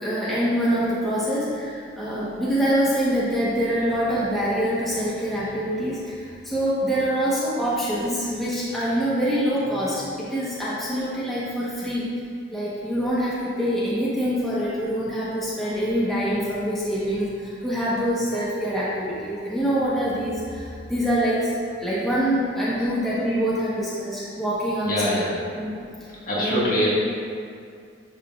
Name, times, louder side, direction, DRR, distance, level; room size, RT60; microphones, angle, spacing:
voice 1, 0.0-12.1 12.5-25.2 25.5-25.8 26.4-26.9, equal, ahead, -10 dB, 1.2 m, -25 dB
voice 2, 24.8-25.4 26.3-26.9, equal, 45° left, -7 dB, 1.7 m, -24 dB
10.0 x 5.4 x 2.5 m, 2.3 s
head